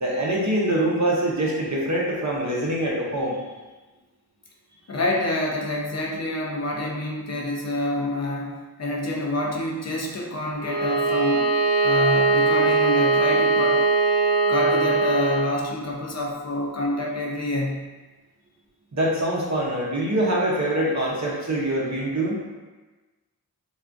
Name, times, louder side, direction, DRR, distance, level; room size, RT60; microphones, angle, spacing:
voice 1, 0.0-3.4 18.9-22.4, right 1 dB, 50° right, -3 dB, 0.7 m, -24 dB
voice 2, 4.9-11.5 11.8-13.9 14.5-17.9, left 1 dB, 45° left, -1 dB, 0.5 m, -27 dB
Bowed string instrument, 10.6-15.5, right 3 dB, 65° left, 0.9 m, -21 dB
3.4 x 2.4 x 2.5 m, 1.2 s
wide cardioid pair, 70°, 38 cm